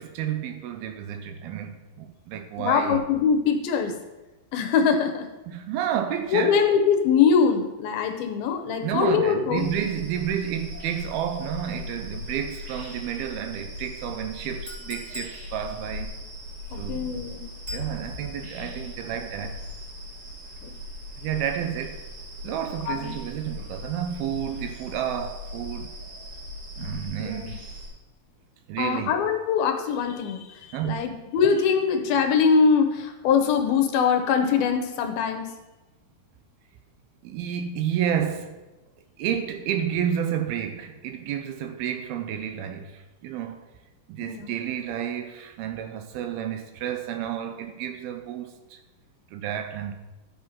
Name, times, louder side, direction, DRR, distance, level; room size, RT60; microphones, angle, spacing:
voice 1, 0.0-3.0 5.5-6.6 8.8-16.1 16.8-17.1 17.7-19.6 21.2-22.0 22.4-25.9 26.8-27.6 28.7-29.1 30.7-31.0 37.2-38.6 39.2-43.6 44.1-48.8 49.3-49.9, right 9 dB, 80° right, 2.6 m, -30 dB
voice 2, 2.6-3.9 4.5-5.3 6.3-9.7 16.7-17.5 20.6-20.7 22.9-23.1 27.2-27.5 28.8-35.4 44.2-44.5, left 6 dB, 75° left, 2.7 m, -23 dB
sound 1, 9.5-27.9, left 1 dB, 55° right, 4.2 m, -39 dB
Chink clink, 14.7-15.4 17.7-17.9, left 2 dB, 30° right, 0.6 m, -39 dB
12.5 x 5.6 x 5.7 m
omnidirectional pair, 4.5 m